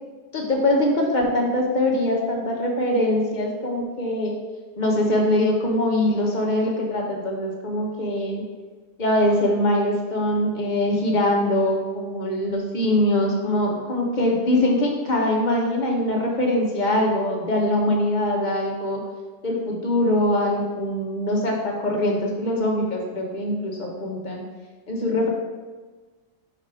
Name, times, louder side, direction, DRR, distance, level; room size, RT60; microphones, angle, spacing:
voice 1, 0.3-4.3 4.8-8.4 9.0-19.0 19.4-24.4 24.9-25.3, left 1 dB, 40° left, 0 dB, 1.1 m, -22 dB
5.1 x 5.0 x 4.8 m, 1.4 s
omnidirectional pair, 1.3 m